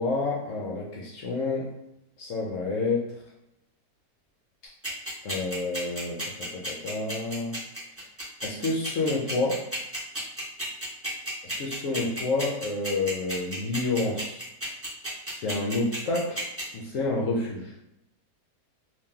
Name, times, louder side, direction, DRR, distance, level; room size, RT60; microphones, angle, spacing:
voice 1, 0.0-1.7 2.2-3.2 5.2-7.6 8.4-9.6 11.4-14.4 15.3-16.5 16.7-17.7, left 3 dB, 70° left, -2 dB, 0.8 m, -29 dB
sound 1, 4.8-16.6, right 1 dB, 10° right, 0.8 m, -33 dB
2.9 x 2.7 x 3.6 m, 0.81 s
omnidirectional pair, 1.8 m